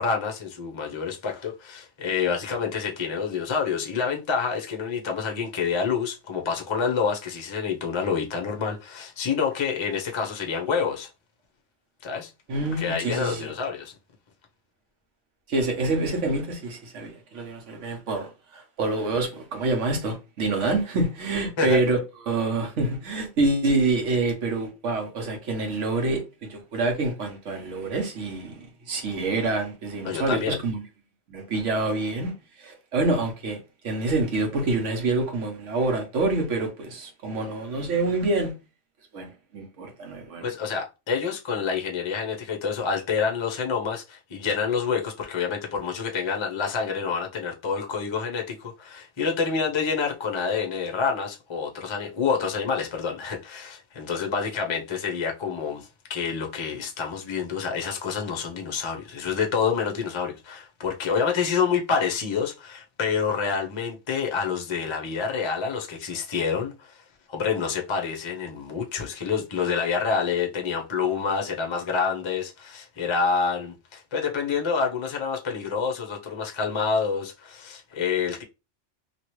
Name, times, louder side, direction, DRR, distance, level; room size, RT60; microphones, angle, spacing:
voice 1, 0.0-11.1 12.0-12.3 12.8-13.9 21.6-21.8 30.0-30.6 40.4-67.0 67.3-78.4, left 6 dB, 35° left, 0.5 m, -27 dB
voice 2, 12.5-13.5 15.5-22.0 22.3-30.8 31.3-32.3 32.6-33.6 33.8-38.5 39.1-40.5, right 2 dB, 85° right, 1.3 m, -26 dB
3.0 x 2.7 x 2.9 m
omnidirectional pair, 1.2 m